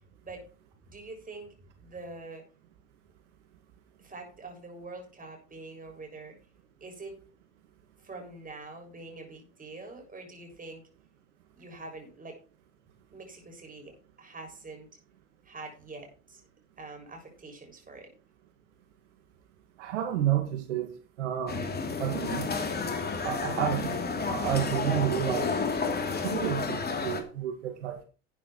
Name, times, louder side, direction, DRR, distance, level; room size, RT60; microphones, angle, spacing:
voice 1, 0.8-2.4 4.0-6.4 6.8-7.2 8.0-10.8 11.5-12.4 13.1-14.9 15.4-16.4 16.8-18.1, right 3 dB, 25° right, 2 dB, 6.9 m, -45 dB
voice 2, 19.8-20.9 21.2-21.6 22.0-22.5 23.2-24.0 24.3-25.5 26.2-28.0, right 11 dB, 85° right, 6 dB, 1.9 m, -30 dB
sound 1, 21.5-27.2, left 4 dB, 25° left, 3.1 m, -31 dB
13.0 x 9.1 x 4.5 m, 0.37 s
hypercardioid pair, 80°, 35 cm